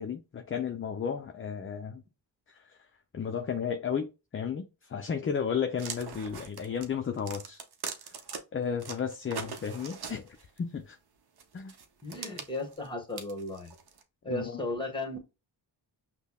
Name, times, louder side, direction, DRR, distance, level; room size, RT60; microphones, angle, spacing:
voice 1, 0.0-2.0 3.1-4.6 4.9-7.6 8.5-10.2 10.6-11.0 11.5-11.7 14.3-14.6, left 7 dB, 30° left, 0.4 m, -33 dB
sound 1, 5.8-8.4 8.8-10.6 11.4-14.0, right 6 dB, 55° right, 0.7 m, -41 dB
voice 2, 12.0-13.7 14.2-15.2, left 2 dB, 10° left, 1.2 m, -35 dB
5.4 x 2.1 x 2.2 m
cardioid pair, 65°, 45 cm